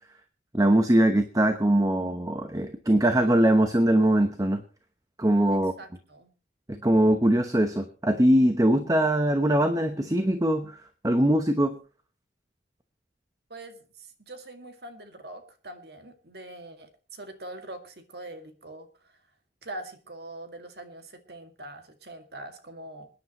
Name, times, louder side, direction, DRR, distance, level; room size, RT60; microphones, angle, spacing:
voice 1, 0.5-4.6 5.2-5.7 6.7-10.8 11.0-11.8, right 1 dB, 20° right, 8 dB, 0.9 m, -22 dB
voice 2, 5.5-6.3 13.5-18.9 19.6-23.1, right 1 dB, 65° right, 6 dB, 2.1 m, -43 dB
27.0 x 10.0 x 3.0 m, 0.34 s
head